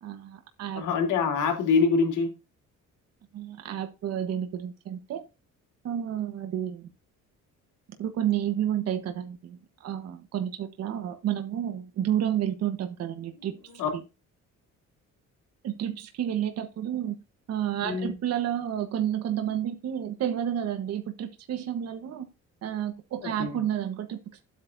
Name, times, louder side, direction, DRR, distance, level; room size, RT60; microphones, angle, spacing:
voice 1, 0.0-0.8 3.3-5.2 5.8-6.9 8.0-13.6 15.6-17.2 17.5-22.3 22.6-24.4, right 10 dB, 55° right, 1.3 m, -30 dB
voice 2, 0.7-2.3 13.8-13.9 17.8-18.1 23.2-23.6, left 5 dB, 75° left, 3.8 m, -25 dB
12.5 x 8.6 x 2.7 m
cardioid pair, 165°, 30 cm